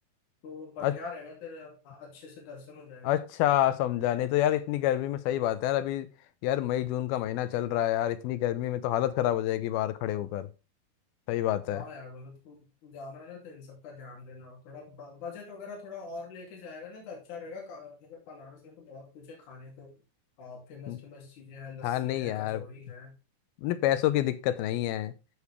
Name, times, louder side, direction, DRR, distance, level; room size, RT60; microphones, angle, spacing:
voice 1, 0.4-3.2 11.7-19.9 20.4-23.1, left 4 dB, 55° left, 3.8 m, -44 dB
voice 2, 3.0-6.1 6.4-10.5 11.3-11.8 20.9-21.0 21.8-22.6 23.6-25.1, left 13 dB, 90° left, 2.6 m, -28 dB
13.5 x 4.9 x 3.4 m
omnidirectional pair, 4.3 m